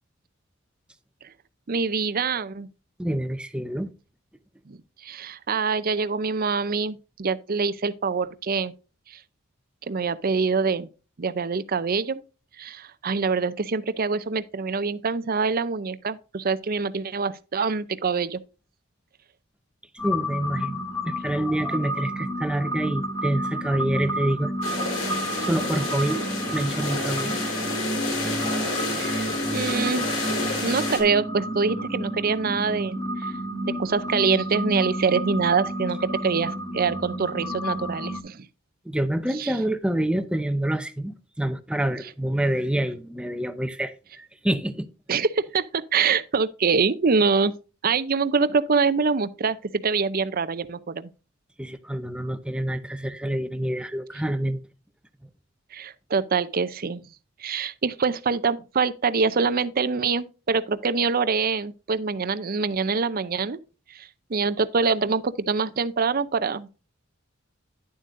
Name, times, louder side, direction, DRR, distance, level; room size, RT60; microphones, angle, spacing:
voice 1, 1.7-2.7 4.7-4.8 5.0-8.7 9.9-10.9 11.2-12.2 12.6-18.4 29.0-30.1 30.6-33.3 33.6-38.5 39.4-39.5 45.1-47.5 47.8-51.1 55.7-57.0 57.4-63.6 63.9-66.7, right 5 dB, 45° right, 0.6 m, -25 dB
voice 2, 3.0-3.9 20.0-20.8 21.1-24.9 25.4-27.4 38.8-44.9 51.6-54.6, right 1 dB, 5° right, 0.7 m, -27 dB
sound 1, 20.0-38.2, equal, 15° left, 1.3 m, -31 dB
sound 2, 24.6-31.0, left 2 dB, 75° left, 3.8 m, -29 dB
11.0 x 7.5 x 2.6 m
head